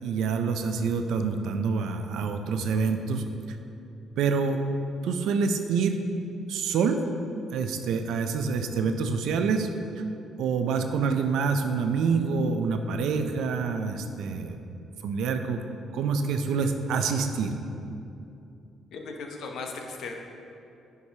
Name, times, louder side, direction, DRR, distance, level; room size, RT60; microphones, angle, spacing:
voice 1, 0.0-3.2 4.2-4.6 5.0-6.0 6.5-7.0 7.5-9.7 10.4-14.6 15.0-15.6 15.9-17.5, right 5 dB, 85° right, 6 dB, 0.5 m, -26 dB
voice 2, 18.9-20.1, left 4 dB, 75° left, 2 dB, 0.8 m, -37 dB
10.0 x 4.7 x 2.8 m, 2.7 s
cardioid pair, 90°, 0 cm